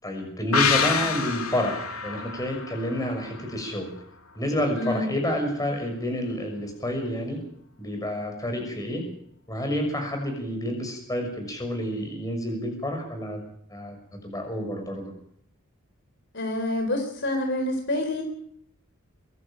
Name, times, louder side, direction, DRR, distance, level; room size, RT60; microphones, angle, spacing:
voice 1, 0.0-3.9 4.3-7.4 7.8-9.1 9.5-13.4 13.7-14.0 14.2-15.1, equal, 15° left, 3 dB, 6.3 m, -29 dB
sound 1, 0.5-4.0 4.3-4.4, left 6 dB, 90° left, 2.5 m, -28 dB
voice 2, 4.7-5.1 16.3-18.2, left 1 dB, 55° left, 4 dB, 4.2 m, -27 dB
23.5 x 12.0 x 9.0 m, 0.68 s
head